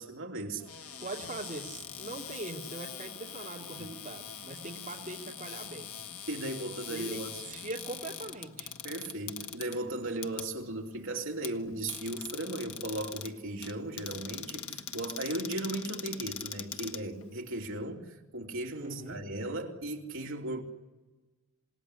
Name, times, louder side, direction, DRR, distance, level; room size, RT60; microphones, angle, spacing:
voice 1, 0.0-1.0 6.3-7.4 8.8-20.6, right 1 dB, 60° right, 1 dB, 3.1 m, -37 dB
Cupboard open or close, 0.6-17.7, left 8 dB, 80° left, 1.3 m, -43 dB
voice 2, 1.0-5.9 6.9-8.7 18.8-19.2, right 2 dB, 35° right, -3 dB, 2.7 m, -41 dB
27.5 x 18.5 x 10.0 m, 1.2 s
head